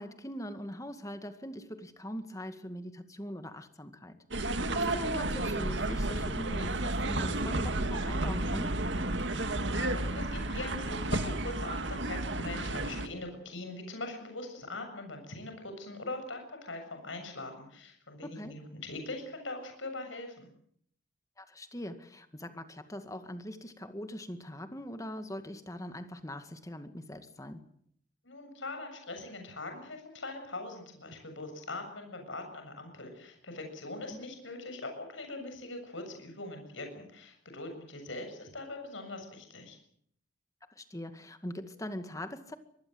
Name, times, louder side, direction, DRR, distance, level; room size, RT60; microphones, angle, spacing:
voice 1, 0.0-4.2 4.7-8.8 18.4-18.5 21.4-27.6 40.8-42.6, equal, 15° left, 9 dB, 2.0 m, -41 dB
sound 1, 4.3-13.1, right 2 dB, 65° right, 2.2 m, -32 dB
voice 2, 9.7-20.5 28.2-39.8, left 2 dB, 75° left, 5 dB, 7.2 m, -42 dB
25.5 x 19.5 x 8.0 m, 0.66 s
head